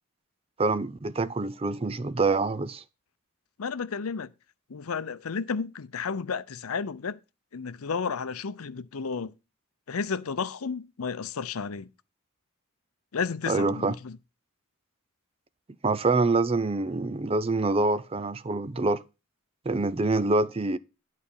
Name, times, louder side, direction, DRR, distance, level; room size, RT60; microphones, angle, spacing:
voice 1, 0.6-2.8 13.5-13.9 15.8-19.0 19.7-20.8, right 3 dB, 25° right, 0.5 m, -26 dB
voice 2, 3.6-4.3 4.7-7.2 7.5-9.3 9.9-11.9 13.1-14.2, left 5 dB, 85° left, 0.6 m, -32 dB
11.0 x 4.2 x 7.1 m
head